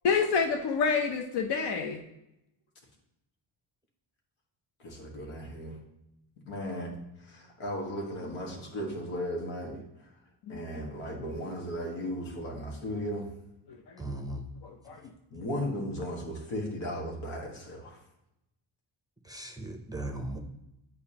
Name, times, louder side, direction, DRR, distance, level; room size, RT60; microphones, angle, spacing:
voice 1, 0.0-2.0 10.5-10.6 13.7-13.8 14.6-15.0, left 5 dB, 55° left, 3 dB, 0.7 m, -28 dB
voice 2, 4.8-5.8 6.5-6.9 7.2-9.8 10.5-13.3 15.3-18.0, equal, 85° left, 0 dB, 1.7 m, -36 dB
voice 3, 14.0-14.5 19.2-20.4, right 1 dB, 10° right, 3 dB, 0.6 m, -37 dB
8.4 x 4.8 x 2.9 m, 0.88 s
cardioid pair, 115°, 48 cm